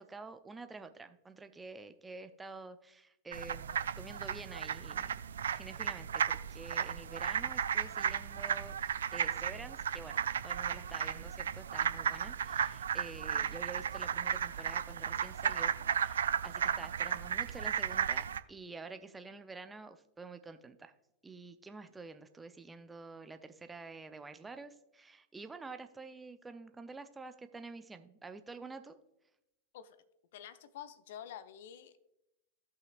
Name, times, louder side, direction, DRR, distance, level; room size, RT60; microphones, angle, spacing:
voice 1, 0.0-5.2 5.5-20.9 21.2-29.0, right 3 dB, 10° right, 9 dB, 0.6 m, -49 dB
sound 1, 3.3-18.4, right 8 dB, 65° right, 0.3 m, -34 dB
voice 2, 30.3-32.0, left 9 dB, 55° left, 13 dB, 0.6 m, -48 dB
15.5 x 5.8 x 2.4 m, 0.87 s
figure-of-eight pair, 90°, 0 cm